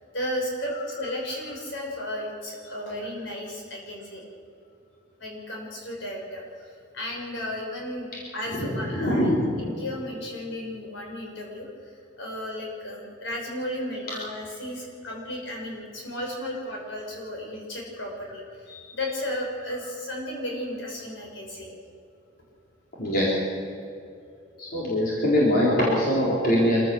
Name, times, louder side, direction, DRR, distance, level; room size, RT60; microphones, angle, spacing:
voice 1, 0.0-4.2 5.2-6.4 6.9-9.3 9.6-21.7 23.2-23.3, left 1 dB, 65° left, -1 dB, 6.1 m, -34 dB
voice 2, 8.5-9.7 23.0-23.4 24.6-26.8, equal, 50° left, -6 dB, 4.5 m, -23 dB
26.0 x 15.0 x 7.2 m, 2.6 s
head